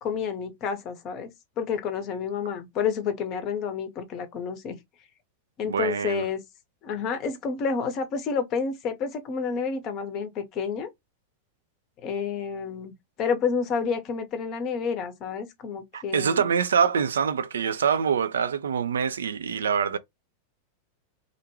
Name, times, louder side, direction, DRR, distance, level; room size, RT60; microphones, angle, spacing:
voice 1, 0.0-1.3 1.6-4.8 5.6-6.4 6.8-10.9 12.0-16.5, left 6 dB, 35° left, 0.6 m, -29 dB
voice 2, 5.6-6.3 15.9-20.0, right 7 dB, 65° right, 0.3 m, -25 dB
2.5 x 2.1 x 2.7 m
figure-of-eight pair, 90°, 0 cm